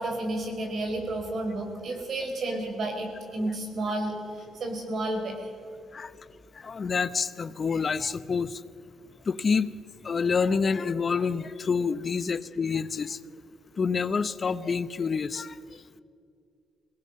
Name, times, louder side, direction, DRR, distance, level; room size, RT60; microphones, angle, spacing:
voice 1, 0.0-5.5, right 2 dB, 55° right, 3 dB, 4.8 m, -31 dB
voice 2, 6.6-8.6 9.3-9.7 10.0-13.2 13.8-15.6, left 5 dB, 40° left, 15 dB, 0.8 m, -27 dB
22.0 x 18.5 x 6.5 m, 2.3 s
cardioid pair, 90°, 0 cm